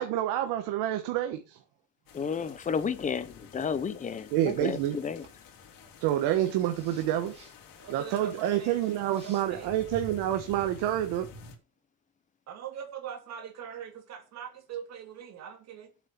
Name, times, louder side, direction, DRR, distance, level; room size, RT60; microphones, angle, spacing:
voice 1, 0.0-1.6 4.3-5.0 6.0-7.3 7.9-11.3, right 12 dB, 75° right, 1.5 m, -28 dB
sound 1, 2.1-11.6, left 2 dB, 60° left, 3.8 m, -49 dB
voice 2, 2.1-5.2, left 6 dB, 20° left, 0.9 m, -32 dB
sound 2, 4.6-4.8 5.2-5.3 6.7-7.6 9.1-9.4, right 2 dB, 15° right, 4.7 m, -54 dB
voice 3, 7.8-9.7 12.5-15.9, right 8 dB, 45° right, 2.7 m, -42 dB
8.2 x 7.3 x 7.1 m
cardioid pair, 175°, 38 cm